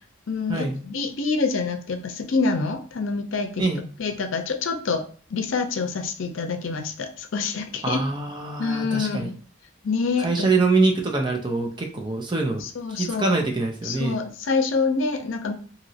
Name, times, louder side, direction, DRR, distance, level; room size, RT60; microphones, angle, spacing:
voice 1, 0.3-3.7 4.0-5.0 5.3-8.0 8.6-9.3 9.8-10.5 12.6-13.4 13.8-15.5, left 4 dB, 80° left, 7 dB, 0.5 m, -26 dB
voice 2, 7.8-9.3 10.2-12.6 12.9-14.2, right 3 dB, 25° right, 2 dB, 0.5 m, -24 dB
2.9 x 2.8 x 2.7 m, 0.42 s
head